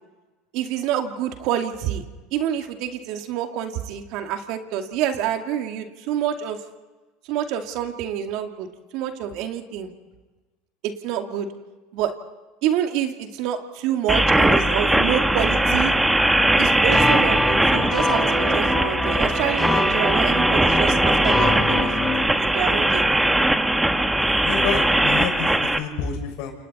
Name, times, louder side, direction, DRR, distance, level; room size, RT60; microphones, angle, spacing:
voice 1, 0.5-2.0 2.3-6.6 7.3-8.7 8.9-9.9 10.8-11.5 11.9-12.1 12.6-15.9 16.6-21.9 22.3-23.1, right 10 dB, 60° right, 5 dB, 2.3 m, -27 dB
sound 1, 14.1-25.8, right 1 dB, 10° right, 1.7 m, -20 dB
sound 2, 16.9-22.3, left 2 dB, 15° left, 7.2 m, -25 dB
voice 2, 24.3-26.5, left 6 dB, 65° left, 2 dB, 6.5 m, -29 dB
29.0 x 28.5 x 4.3 m, 1.2 s
hypercardioid pair, 85°, 0 cm